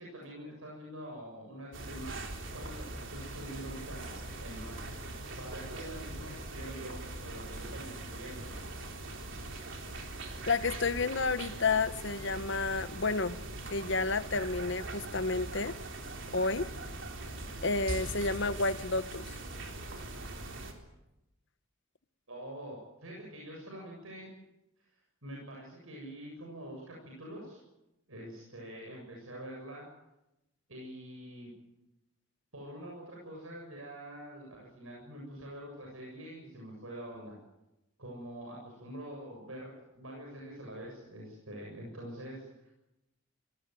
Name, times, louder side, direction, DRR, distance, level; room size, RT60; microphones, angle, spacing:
voice 1, 0.0-8.5 22.3-24.3 25.2-27.6 28.1-29.9 30.7-31.5 32.5-37.4 38.0-42.7, right 1 dB, 75° right, -1 dB, 7.4 m, -45 dB
sound 1, 1.7-20.7, right 2 dB, 60° right, 3.8 m, -41 dB
voice 2, 10.5-13.4 13.7-15.7 16.3-16.7 17.6-19.3, left 3 dB, 60° left, 12 dB, 1.1 m, -30 dB
26.0 x 19.0 x 9.2 m, 0.94 s
head